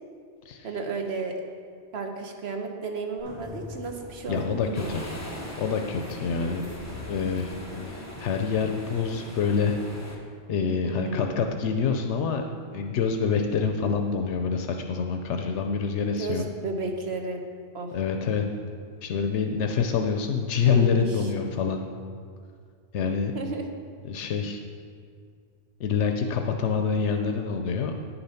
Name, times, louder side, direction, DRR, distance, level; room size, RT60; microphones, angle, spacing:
voice 1, 0.6-1.4 1.9-5.0 6.4-6.8 10.8-11.4 16.2-17.4 17.7-17.9 20.6-21.0 23.3-23.7, right 3 dB, 65° right, 3 dB, 1.3 m, -33 dB
sound 1, 3.2-8.6, left 2 dB, 50° right, 1.8 m, -43 dB
voice 2, 4.3-5.1 5.6-6.6 7.1-7.5 7.9-9.8 10.1-10.2 10.5-12.4 12.7-16.4 17.9-18.4 19.0-21.8 22.9-23.3 24.0-24.6 25.8-27.9, left 6 dB, 85° left, 5 dB, 1.0 m, -26 dB
sound 2, 4.7-10.2, left 1 dB, 15° left, 1.0 m, -40 dB
9.7 x 6.9 x 5.7 m, 2.1 s
omnidirectional pair, 1.2 m